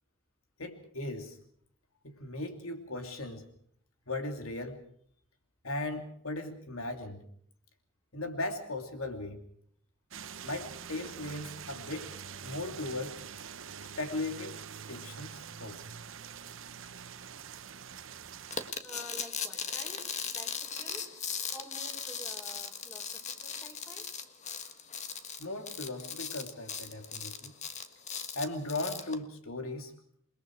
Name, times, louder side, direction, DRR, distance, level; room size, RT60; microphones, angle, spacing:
voice 1, 0.6-1.4 2.0-3.5 4.1-4.8 5.6-7.2 8.1-9.4 10.4-12.1 12.4-13.2 14.0-14.6 14.9-15.8 25.4-27.5 28.3-29.9, left 2 dB, 90° left, 5 dB, 2.9 m, -37 dB
sound 1, 10.1-18.7, right 7 dB, 65° right, 0.9 m, -45 dB
sound 2, 18.5-29.1, left 6 dB, 35° left, 1.5 m, -38 dB
voice 2, 18.8-21.0 21.5-24.1, equal, 10° left, 2 dB, 5.9 m, -49 dB
28.5 x 21.0 x 4.7 m, 0.63 s
head